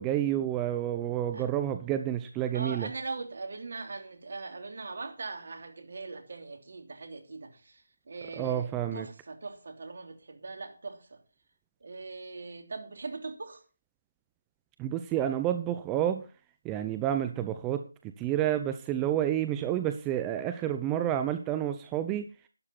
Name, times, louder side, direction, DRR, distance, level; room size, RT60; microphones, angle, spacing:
voice 1, 0.0-2.9 8.4-9.1 14.8-16.3 16.6-17.8 18.2-22.3, right 11 dB, 15° right, 0.6 m, -29 dB
voice 2, 2.5-11.2 11.8-13.6, right 3 dB, 60° right, 3.0 m, -41 dB
12.0 x 11.0 x 4.3 m
figure-of-eight pair, 160°, 0 cm